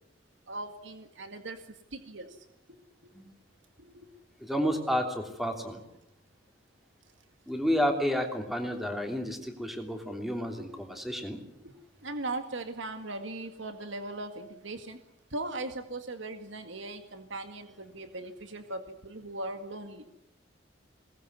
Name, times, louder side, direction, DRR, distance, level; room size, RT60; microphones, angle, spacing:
voice 1, 0.5-1.6 1.9-2.4 2.7-2.8 3.8-4.1 10.5-10.7 11.6-11.8 12.0-15.0 15.3-20.0, right 2 dB, 80° right, 7 dB, 2.0 m, -39 dB
voice 2, 4.4-5.8 7.5-11.4, equal, ahead, 4 dB, 3.1 m, -31 dB
22.0 x 20.0 x 9.5 m, 0.81 s
head